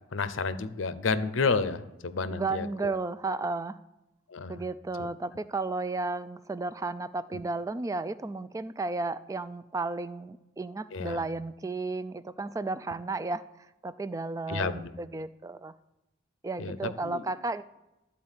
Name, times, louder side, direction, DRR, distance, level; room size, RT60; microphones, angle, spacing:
voice 1, 0.1-2.9 4.3-4.6 5.0-5.1 10.9-11.2 14.5-14.9 16.6-17.2, left 4 dB, 85° left, 13 dB, 0.6 m, -31 dB
voice 2, 2.3-3.8 4.5-13.4 13.8-15.7 16.4-17.6, right 3 dB, 15° right, 15 dB, 0.3 m, -33 dB
12.5 x 4.3 x 7.3 m, 0.94 s
head